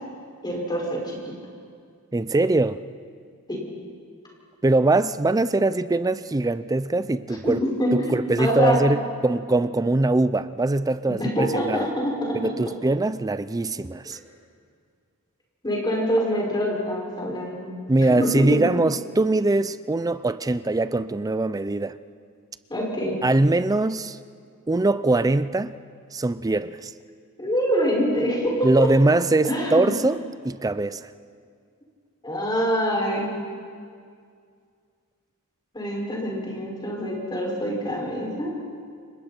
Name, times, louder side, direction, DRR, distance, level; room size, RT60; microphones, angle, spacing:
voice 1, 0.4-1.3 3.5-3.6 7.4-8.8 11.1-12.6 15.6-17.7 18.0-18.7 22.7-23.2 27.4-28.9 29.4-29.9 32.2-33.3 35.7-38.5, equal, 20° left, 6.1 m, -25 dB
voice 2, 2.1-2.8 4.6-7.6 7.9-11.9 12.3-14.2 17.9-21.9 23.2-24.2 24.7-25.8 26.1-26.9 28.6-30.2 30.4-31.1, right 2 dB, 15° right, 0.4 m, -22 dB
30.0 x 24.5 x 4.5 m
head